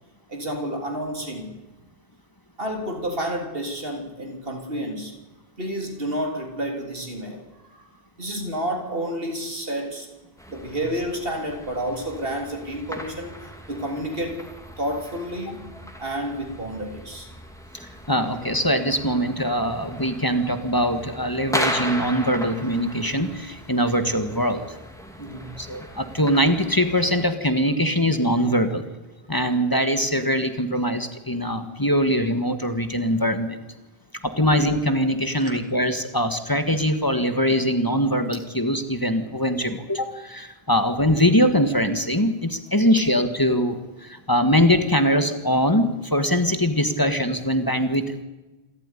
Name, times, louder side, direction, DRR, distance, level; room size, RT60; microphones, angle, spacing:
voice 1, 0.3-1.5 2.6-5.1 5.6-7.9 8.2-10.1 10.5-13.4 13.7-14.5 14.8-15.7 16.0-17.3 25.2-25.5 35.4-35.5, equal, 65° right, 3 dB, 3.8 m, -30 dB
sound 1, 10.4-27.3, equal, 5° left, 2.7 m, -37 dB
voice 2, 17.8-24.6 25.6-28.8 29.3-33.6 34.2-48.2, equal, 20° left, 8 dB, 1.7 m, -22 dB
27.0 x 13.5 x 10.0 m, 1.1 s
omnidirectional pair, 1.0 m